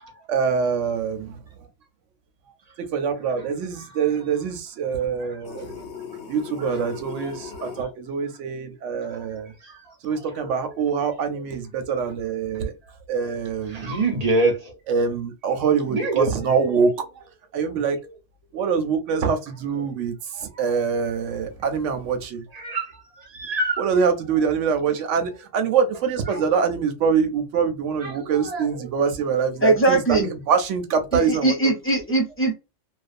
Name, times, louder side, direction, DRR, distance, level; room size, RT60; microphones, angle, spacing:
voice 1, 0.3-1.7 2.9-5.9 6.3-9.5 10.0-12.7 13.1-14.0 14.9-17.2 17.5-18.0 18.5-22.4 23.8-30.2 30.5-31.5, right 6 dB, 85° right, 0.9 m, -24 dB
sound 1, 5.4-7.8, left 6 dB, 70° left, 0.8 m, -38 dB
voice 2, 13.7-14.8 15.9-16.3 20.5-20.6 22.5-23.9 26.3-26.4 28.0-28.7, right 2 dB, 40° right, 0.7 m, -26 dB
voice 3, 29.6-30.3 31.1-32.5, right 2 dB, 10° left, 0.8 m, -20 dB
2.5 x 2.2 x 2.4 m
omnidirectional pair, 1.2 m